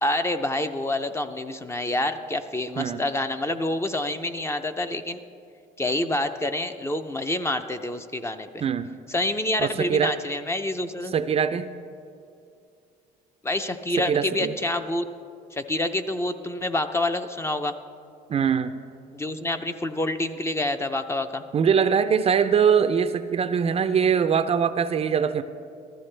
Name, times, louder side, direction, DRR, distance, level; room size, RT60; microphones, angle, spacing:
voice 1, 0.0-5.2 5.8-8.7 9.1-11.1 13.4-15.1 15.5-17.7 19.1-21.4, left 1 dB, 15° left, 8 dB, 0.5 m, -27 dB
voice 2, 9.6-10.2 11.1-11.7 14.0-14.5 18.3-18.7 21.5-25.4, right 7 dB, 35° right, 11 dB, 0.4 m, -22 dB
14.5 x 13.0 x 3.3 m, 2.4 s
cardioid pair, 110°, 17 cm